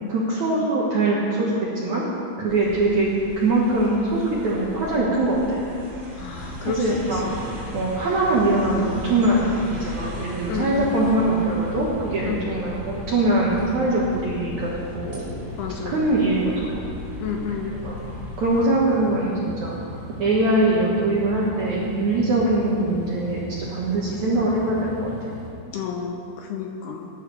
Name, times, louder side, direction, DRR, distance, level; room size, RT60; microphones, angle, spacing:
voice 1, 0.1-2.1 2.4-5.6 6.6-7.2 7.7-14.7 14.9-15.3 15.9-16.9 17.7-18.0 18.4-19.8 20.2-23.4 23.7-25.1, right 2 dB, 65° right, -6 dB, 1.9 m, -22 dB
sound 1, 2.5-18.7, equal, 15° right, 2.4 m, -39 dB
voice 2, 6.2-7.3 9.3-9.5 10.5-11.0 12.2-12.5 15.6-16.0 17.2-17.8 25.7-27.1, left 6 dB, 80° left, 1 dB, 2.5 m, -30 dB
sound 2, 6.3-25.5, left 1 dB, 55° left, 3.2 m, -38 dB
20.0 x 11.0 x 3.4 m, 2.6 s
omnidirectional pair, 5.3 m